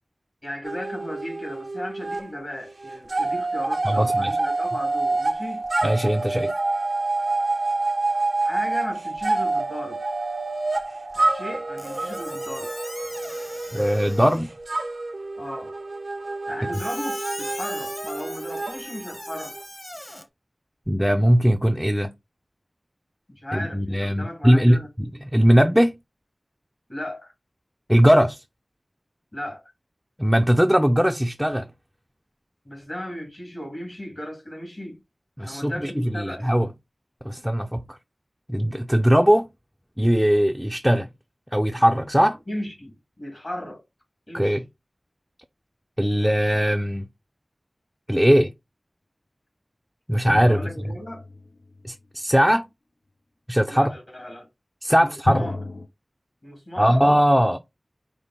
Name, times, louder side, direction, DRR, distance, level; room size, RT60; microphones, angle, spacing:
voice 1, 0.4-5.6 8.1-10.0 11.1-12.7 15.4-15.7 16.5-19.6 23.3-24.9 26.9-27.3 29.3-29.6 32.7-35.0 35.4-36.5 42.5-43.8 44.3-44.6 50.5-51.2 53.7-54.5 55.0-55.6 56.4-57.1, left 1 dB, 50° left, 2.0 m, -35 dB
sound 1, 0.6-2.3 2.5-19.6, right 2 dB, 75° right, 0.5 m, -27 dB
voice 2, 3.8-4.3 5.8-6.5 13.7-14.5 16.6-16.7 20.9-22.1 23.5-25.9 27.9-28.4 30.2-31.7 35.4-36.7 37.2-38.0 38.5-39.5 40.0-41.1 41.5-42.4 44.3-44.6 46.0-47.1 48.1-48.5 50.1-50.7 51.8-52.7 53.5-53.9 54.8-55.5 56.8-57.6, equal, ahead, 0.4 m, -20 dB
Squeak, 11.8-14.5 16.7-20.2, left 1 dB, 25° left, 0.9 m, -39 dB
sound 2, 50.3-51.9 55.2-55.9, left 2 dB, 80° left, 0.6 m, -31 dB
5.1 x 2.0 x 3.9 m
wide cardioid pair, 40°, 0 cm